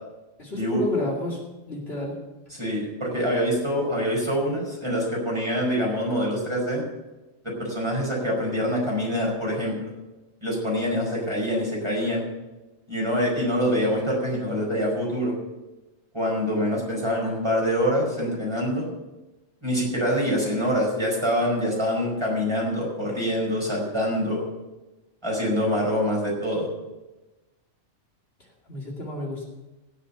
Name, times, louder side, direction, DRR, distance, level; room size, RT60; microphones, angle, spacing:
voice 1, 0.4-1.4 1.7-2.1 28.7-29.4, left 2 dB, 50° left, -1 dB, 2.8 m, -30 dB
voice 2, 2.5-6.8 7.4-9.8 10.4-12.2 12.9-15.4 16.1-18.9 19.6-24.5 25.2-26.7, equal, 20° right, -3 dB, 5.0 m, -25 dB
17.0 x 7.2 x 6.9 m, 1.1 s
omnidirectional pair, 1.3 m